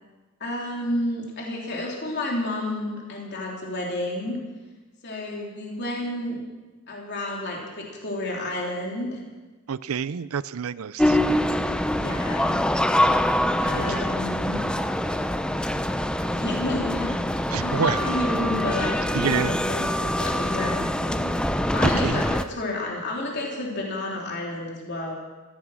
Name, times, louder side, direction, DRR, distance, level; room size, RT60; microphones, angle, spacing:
voice 1, 0.4-4.4 5.0-6.4 6.9-9.2 11.9-12.6 13.6-14.6 16.3-17.1 17.6-25.1, left 1 dB, 50° left, -2 dB, 3.2 m, -31 dB
voice 2, 9.7-11.2 17.5-18.0 19.1-19.5 22.0-22.2, right 6 dB, 75° right, 18 dB, 0.5 m, -27 dB
sound 1, 11.0-22.4, left 1 dB, 5° left, 0.5 m, -24 dB
15.0 x 14.0 x 6.3 m, 1.3 s
head